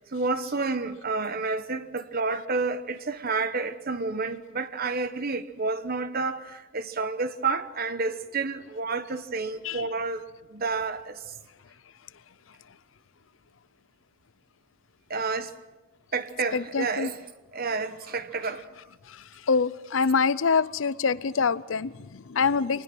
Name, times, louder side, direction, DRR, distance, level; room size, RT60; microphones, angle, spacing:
voice 1, 0.0-10.2 10.5-11.3 15.1-15.6 16.1-17.2 17.5-18.7, right 4 dB, 50° right, 1.1 m, -30 dB
voice 2, 16.5-17.1 19.1-22.8, left 5 dB, 70° left, 0.6 m, -25 dB
25.0 x 20.0 x 6.2 m
head